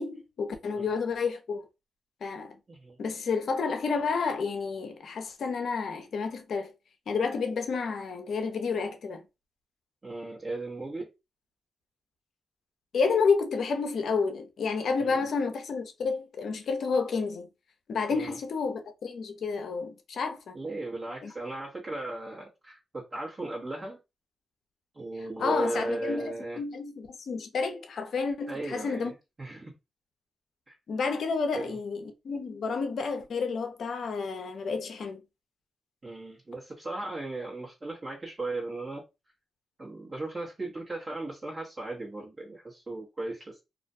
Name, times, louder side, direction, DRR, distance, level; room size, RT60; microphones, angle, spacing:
voice 1, 0.0-1.7 2.2-2.6 3.0-6.7 7.1-9.2 12.9-17.5 17.9-20.6 21.2-21.3 25.4-29.1 30.9-35.2, left 5 dB, 70° left, 0.5 m, -30 dB
voice 2, 10.0-11.1 15.0-15.3 18.1-18.4 20.5-24.0 24.9-26.6 28.5-29.1 29.4-29.7 30.7-30.8 31.5-31.8 36.0-39.0 39.8-43.6, right 2 dB, 35° right, 0.9 m, -36 dB
2.4 x 2.1 x 2.6 m
cardioid pair, 55°, 0 cm